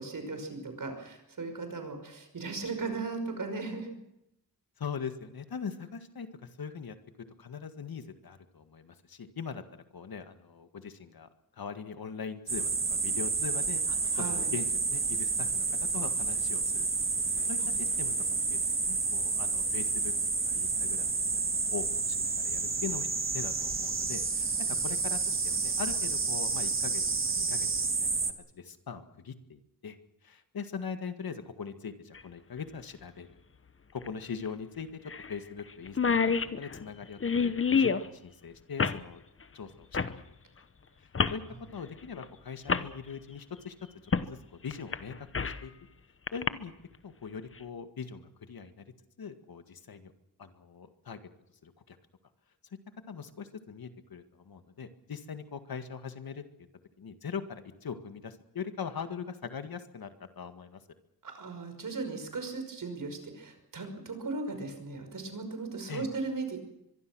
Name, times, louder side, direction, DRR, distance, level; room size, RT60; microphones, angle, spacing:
voice 1, 0.0-3.9 14.1-14.5 61.2-66.6, right 3 dB, 65° right, 6 dB, 5.7 m, -37 dB
voice 2, 4.8-7.0 7.4-9.6 9.9-16.9 17.2-18.1 18.5-20.1 20.5-21.1 21.3-23.1 23.3-27.0 27.3-28.2 28.5-30.0 30.2-33.4 33.9-39.2 39.5-40.2 40.6-40.7 41.0-41.4 41.7-43.7 44.0-45.7 46.3-46.7 47.0-50.1 50.4-51.3 51.6-52.0 52.7-52.8 53.1-56.4 57.0-60.8 65.9-66.1, left 6 dB, 80° left, 8 dB, 1.9 m, -41 dB
sound 1, 12.5-28.3, right 4 dB, 35° right, 1.8 m, -30 dB
sound 2, 32.1-32.2 34.0-34.1 34.5-34.6 35.1-35.3 35.6-35.7 35.9-38.1 38.8-39.0 39.9-40.2 41.1-41.4 42.2-42.3 42.7-42.9 44.1-44.3 44.7-45.6 46.3-46.5, left 5 dB, 35° left, 1.0 m, -27 dB
24.0 x 23.0 x 6.3 m, 0.82 s
wide cardioid pair, 150°, 35 cm